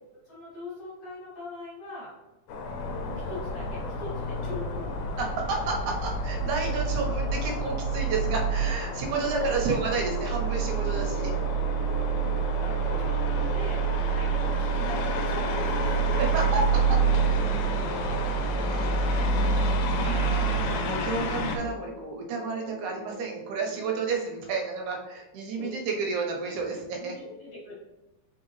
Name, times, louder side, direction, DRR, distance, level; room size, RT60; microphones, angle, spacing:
voice 1, 0.2-2.1 3.0-4.9 6.6-7.0 9.1-9.5 11.1-11.8 12.1-16.2 19.0-19.3 19.9-20.2 20.4-20.7 24.6-24.7 25.5-26.0 27.0-27.8, left 3 dB, 55° left, -7 dB, 2.7 m, -41 dB
sound 1, 2.5-21.6, right 3 dB, 85° left, 2.0 m, -27 dB
voice 2, 5.2-11.3 16.2-17.0 18.6-19.3 20.0-27.2, right 4 dB, 75° right, 0 dB, 2.1 m, -31 dB
sound 2, 9.0-24.1, right 1 dB, 50° right, 1.2 m, -44 dB
4.7 x 3.7 x 3.1 m, 1.0 s
omnidirectional pair, 3.6 m